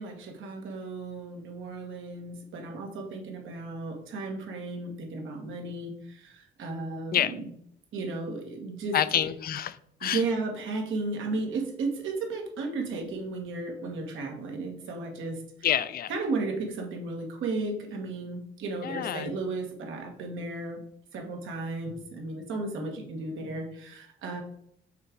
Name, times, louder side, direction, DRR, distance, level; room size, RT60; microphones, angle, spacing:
voice 1, 0.0-7.5 7.9-9.3 10.0-15.4 16.1-20.8 21.1-24.4, right 3 dB, 80° right, 1.5 m, -34 dB
voice 2, 8.9-10.2 15.6-16.1 18.8-19.4, left 10 dB, 50° left, 0.4 m, -28 dB
5.9 x 3.7 x 4.6 m
cardioid pair, 90°, 20 cm